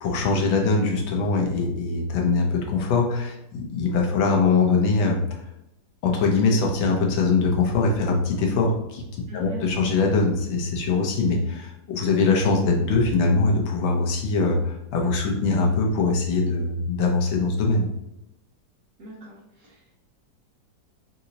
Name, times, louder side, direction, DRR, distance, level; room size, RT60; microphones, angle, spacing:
voice 1, 0.0-3.3 3.7-5.2 6.0-9.0 9.3-17.9, left 3 dB, 85° left, 1 dB, 1.5 m, -22 dB
voice 2, 9.3-9.6 19.0-20.0, right 1 dB, 55° right, -5 dB, 1.0 m, -42 dB
3.8 x 2.7 x 2.8 m, 0.85 s
omnidirectional pair, 2.1 m